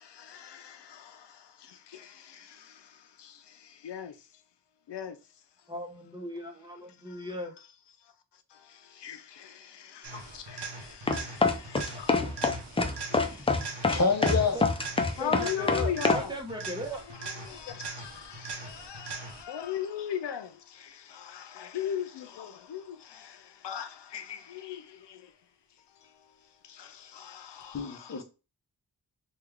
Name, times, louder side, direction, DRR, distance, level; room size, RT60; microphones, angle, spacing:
voice 1, 0.0-4.2 4.9-5.2 7.1-7.3 8.5-14.0 14.9-16.3 17.2-25.3 26.0-26.3 26.6-28.2, left 9 dB, 85° left, 0.5 m, -40 dB
voice 2, 5.7-7.5 14.5-14.6 15.2-17.0, equal, 10° right, 0.7 m, -38 dB
sound 1, 10.0-19.6 27.6-27.7, right 4 dB, 80° right, 0.9 m, -41 dB
sound 2, 11.1-16.2, left 3 dB, 15° left, 0.3 m, -25 dB
voice 3, 13.9-14.6 27.7-28.2, left 4 dB, 40° left, 0.7 m, -27 dB
3.3 x 2.3 x 3.4 m
wide cardioid pair, 100°, 41 cm